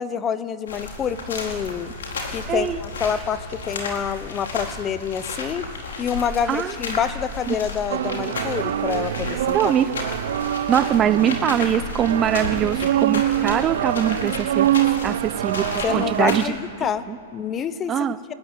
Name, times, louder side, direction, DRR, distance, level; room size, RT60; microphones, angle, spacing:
voice 1, 0.0-1.9 2.3-5.6 6.0-9.7 15.8-17.1 17.3-18.3, left 7 dB, 20° left, 14 dB, 0.9 m, -27 dB
sound 1, 0.7-16.5, left 3 dB, 90° left, 4.0 m, -33 dB
voice 2, 2.5-2.8 6.5-6.8 7.5-7.6 9.5-9.9 10.7-14.7 15.0-16.5 16.8-17.2 17.9-18.2, right 9 dB, 25° right, 14 dB, 0.6 m, -22 dB
sound 2, 7.9-16.4, right 12 dB, 70° right, 0.6 m, -25 dB
20.5 x 14.5 x 9.2 m, 3.0 s
hypercardioid pair, 140°, 0 cm